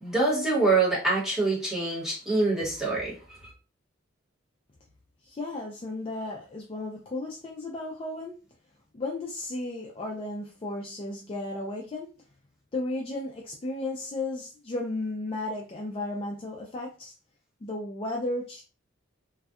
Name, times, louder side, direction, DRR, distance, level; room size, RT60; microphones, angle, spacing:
voice 1, 0.0-3.5, right 3 dB, ahead, 0.9 m, -25 dB
voice 2, 5.2-8.4 8.9-12.1 12.7-17.1 17.6-18.6, left 2 dB, 30° left, 0.3 m, -34 dB
2.6 x 2.2 x 2.3 m
head